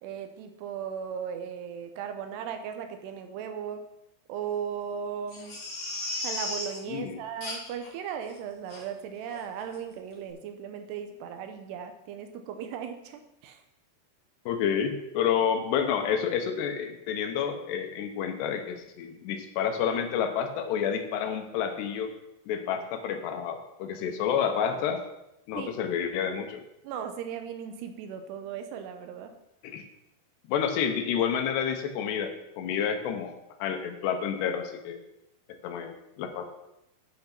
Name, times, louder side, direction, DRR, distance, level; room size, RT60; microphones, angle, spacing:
voice 1, 0.0-3.8 4.3-5.6 6.2-13.6 25.6-25.7 26.8-29.3, right 8 dB, 80° right, 7 dB, 2.8 m, -37 dB
Crying sobbing, 5.3-6.8 7.4-7.9 8.2-8.3 8.7-8.8 9.3-9.5 9.7-9.8, left 2 dB, 45° left, 1.7 m, -35 dB
voice 2, 6.9-7.2 14.5-22.1 22.5-25.0 25.5-26.6 29.6-29.8 30.5-33.3 33.6-35.0 35.6-36.5, left 8 dB, 80° left, 6 dB, 3.0 m, -29 dB
9.3 x 5.7 x 5.9 m, 0.86 s
omnidirectional pair, 5.0 m